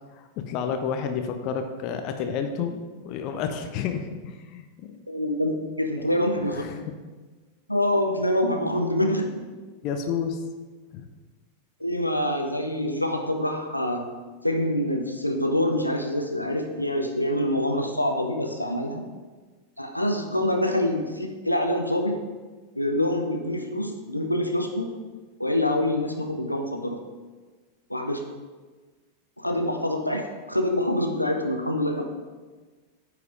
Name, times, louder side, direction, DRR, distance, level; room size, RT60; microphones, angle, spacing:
voice 1, 0.1-5.0 6.0-6.1 6.5-6.8 9.8-10.4 10.9-11.0, left 6 dB, 40° left, 6 dB, 0.8 m, -30 dB
voice 2, 5.1-6.6 7.7-9.4 11.8-14.1 14.4-19.0 19.8-22.2 22.8-24.9 25.4-27.0 27.9-28.2 29.4-32.0, left 1 dB, 90° left, 4 dB, 0.8 m, -26 dB
9.4 x 4.9 x 5.2 m, 1.3 s
figure-of-eight pair, 90°, 0 cm